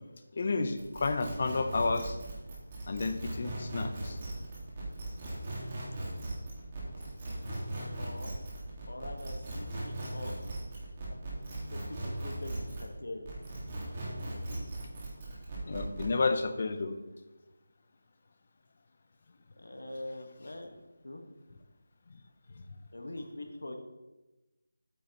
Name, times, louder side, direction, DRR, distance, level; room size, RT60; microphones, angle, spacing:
voice 1, 0.3-2.2 2.9-4.2 14.5-14.7 15.7-17.0, left 3 dB, 40° left, 8 dB, 0.6 m, -31 dB
sound 1, 0.8-12.9 13.3-16.1, right 1 dB, 25° right, 1.7 m, -39 dB
voice 2, 8.0-8.4 8.9-10.3 11.7-13.3 19.6-20.8 21.0-21.2 22.9-23.8, left 1 dB, 85° left, 4 dB, 1.4 m, -43 dB
8.5 x 8.1 x 3.0 m, 1.1 s
figure-of-eight pair, 170°, 0 cm